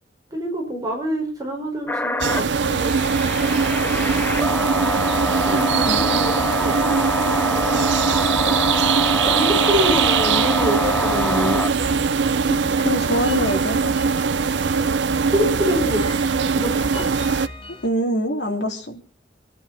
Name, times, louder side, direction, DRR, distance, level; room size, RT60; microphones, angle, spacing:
voice 1, 0.3-3.0 5.4-6.9 7.3-8.1 9.2-11.7 15.2-16.0 16.5-17.0, equal, 20° right, 0 dB, 5.1 m, -26 dB
sound 1, 1.9-11.9, left 1 dB, 10° left, 0.6 m, -25 dB
sound 2, 2.2-17.5, right 5 dB, 85° right, 0.6 m, -21 dB
voice 2, 5.9-6.4 12.5-14.0 17.8-19.0, equal, 70° left, 0 dB, 3.0 m, -25 dB
sound 3, 10.5-17.9, left 1 dB, 30° left, 2.8 m, -40 dB
26.0 x 9.8 x 4.1 m, 0.37 s
head